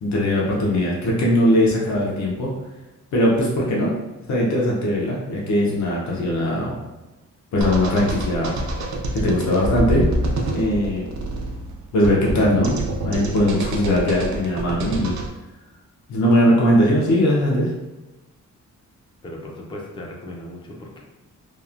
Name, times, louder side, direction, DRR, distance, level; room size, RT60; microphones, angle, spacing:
voice 1, 0.0-2.5 3.1-3.9 4.3-6.8 7.5-8.5 9.1-10.0 10.5-11.1 11.9-15.1 16.1-17.7, left 1 dB, 70° left, -4 dB, 0.6 m, -20 dB
sound 1, 7.6-15.3, right 1 dB, 65° right, 0.4 m, -27 dB
voice 2, 19.2-21.0, left 1 dB, 15° left, -2 dB, 0.3 m, -37 dB
3.0 x 2.0 x 2.4 m, 1.1 s
wide cardioid pair, 175°, 30 cm